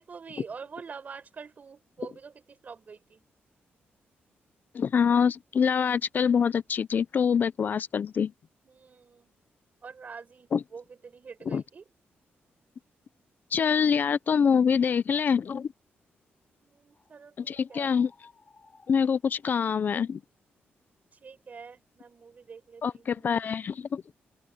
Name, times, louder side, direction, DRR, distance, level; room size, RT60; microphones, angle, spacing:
voice 1, 0.0-3.2 8.6-9.3 9.8-11.8 16.6-18.0 21.2-23.3, right 5 dB, 40° right, 5.5 m, -46 dB
voice 2, 4.7-8.3 10.5-10.6 11.5-11.6 13.5-15.7 17.4-18.1 18.9-20.2 22.8-24.1, left 6 dB, 50° left, 0.5 m, -25 dB
sound 1, 16.9-17.2 17.7-19.7, left 4 dB, 30° left, 4.6 m, -58 dB
open air
cardioid pair, 120°, 4 cm